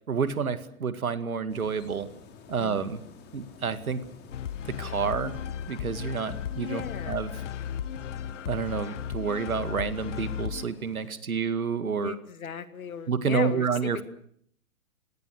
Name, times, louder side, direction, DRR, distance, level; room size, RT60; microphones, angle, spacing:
voice 1, 0.1-2.1 2.5-3.0 3.3-4.0 4.7-5.4 5.7-7.3 8.5-12.1 13.1-14.0, right 5 dB, 85° right, 11 dB, 2.2 m, -29 dB
sound 1, 1.5-11.1, left 5 dB, 25° left, 3.7 m, -51 dB
voice 2, 2.6-3.1 6.7-7.2 12.0-14.0, left 7 dB, 75° left, 11 dB, 2.3 m, -37 dB
sound 2, 4.3-10.6, left 9 dB, 60° left, 1.2 m, -35 dB
29.5 x 18.0 x 6.5 m, 0.65 s
hypercardioid pair, 125°, 42 cm